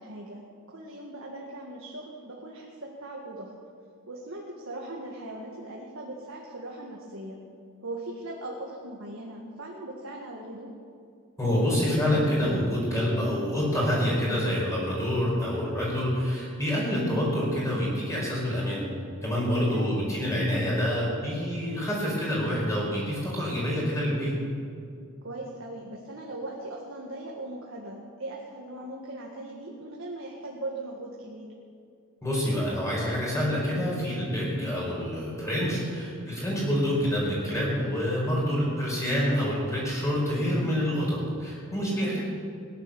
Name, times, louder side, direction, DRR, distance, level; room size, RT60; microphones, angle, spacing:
voice 1, 0.0-3.5 4.1-7.4 7.8-10.7 19.7-20.0 25.2-31.5 38.4-38.7 41.9-42.2, right 1 dB, 65° right, -2 dB, 1.8 m, -39 dB
voice 2, 11.4-18.8 19.2-24.4 32.2-42.2, equal, 15° left, -5 dB, 5.1 m, -27 dB
17.5 x 10.5 x 6.9 m, 2.3 s
head